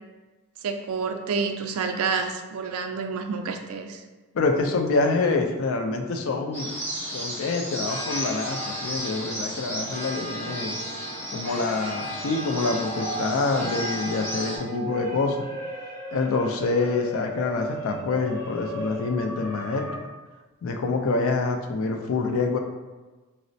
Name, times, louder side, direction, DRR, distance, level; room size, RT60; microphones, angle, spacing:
voice 1, 0.6-4.0, right 5 dB, 70° right, 6 dB, 0.3 m, -29 dB
voice 2, 4.3-6.7 7.1-10.8 11.3-15.5 16.1-19.9 20.6-22.6, left 3 dB, 65° left, 4 dB, 0.4 m, -26 dB
sound 1, 6.5-14.6, equal, 10° left, 0.8 m, -33 dB
sound 2, 9.6-20.0, right 1 dB, 90° left, 0.8 m, -37 dB
4.0 x 2.0 x 2.6 m, 1.2 s
head